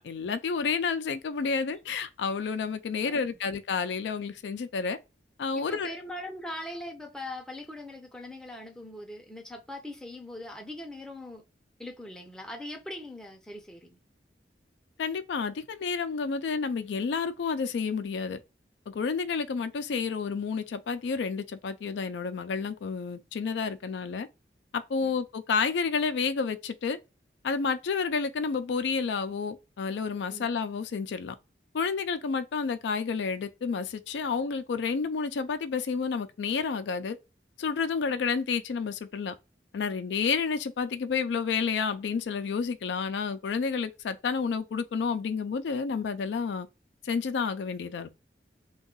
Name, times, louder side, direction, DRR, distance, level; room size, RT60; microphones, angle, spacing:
voice 1, 0.0-5.0 5.4-5.9 15.0-18.4 18.9-24.3 24.7-27.0 27.4-31.4 31.7-37.2 37.6-39.3 39.7-46.7 47.0-48.1, left 5 dB, 80° left, 0.4 m, -30 dB
voice 2, 5.7-11.4 11.8-14.0 25.0-25.2 30.3-30.5, left 1 dB, 5° left, 0.5 m, -41 dB
2.7 x 2.3 x 3.6 m
head